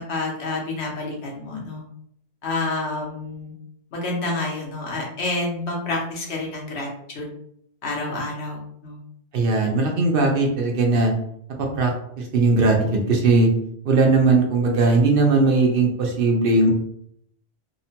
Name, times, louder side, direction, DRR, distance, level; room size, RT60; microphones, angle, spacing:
voice 1, 0.0-1.8 2.4-3.5 3.9-7.3 7.8-9.0, left 2 dB, 80° left, -1 dB, 1.1 m, -28 dB
voice 2, 9.3-11.1 11.7-13.5 13.8-16.7, right 3 dB, 65° right, 1 dB, 0.7 m, -19 dB
2.8 x 2.1 x 2.7 m, 0.70 s
omnidirectional pair, 1.1 m